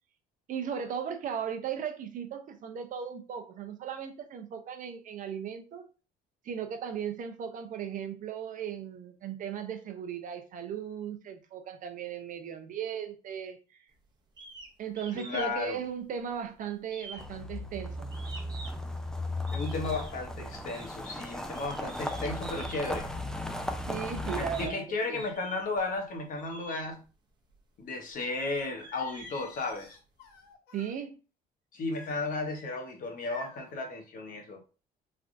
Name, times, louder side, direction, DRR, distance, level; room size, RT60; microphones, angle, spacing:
voice 1, 0.5-5.9 6.4-13.6 14.8-18.1 23.9-24.8 25.1-25.2 30.7-31.2, right 8 dB, 50° right, 0.5 m, -37 dB
sound 1, 14.4-14.7 15.0-15.5 15.9-16.5 16.9-18.9 19.5-20.2 20.7-20.9 21.5-22.8 23.7-23.8 24.3-24.8 25.1-25.8 26.4-26.8 27.5-27.6 28.1-29.9, right 3 dB, 25° right, 0.7 m, -47 dB
voice 2, 15.1-15.8 19.5-23.1 24.3-27.0 27.8-30.0 31.7-34.6, left 3 dB, 55° left, 1.0 m, -34 dB
sound 2, 17.2-24.7, left 1 dB, 5° left, 0.3 m, -36 dB
Singing, 28.8-30.9 31.9-32.8 33.2-33.7, left 3 dB, 80° left, 0.8 m, -50 dB
3.3 x 2.4 x 2.5 m
cardioid pair, 110°, 17 cm